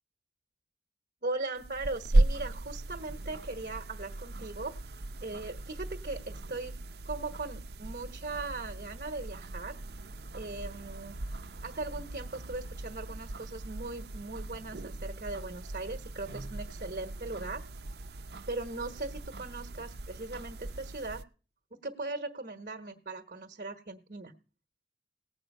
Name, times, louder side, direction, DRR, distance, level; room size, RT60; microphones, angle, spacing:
voice 1, 1.2-4.8 5.2-6.7 7.1-9.7 10.3-11.2 11.6-17.6 18.5-21.2 21.8-24.3, right 3 dB, 55° right, 5 dB, 1.1 m, -39 dB
sound 1, 1.6-21.2, right 2 dB, 70° right, 0.6 m, -36 dB
18.0 x 8.0 x 5.4 m, 0.38 s
head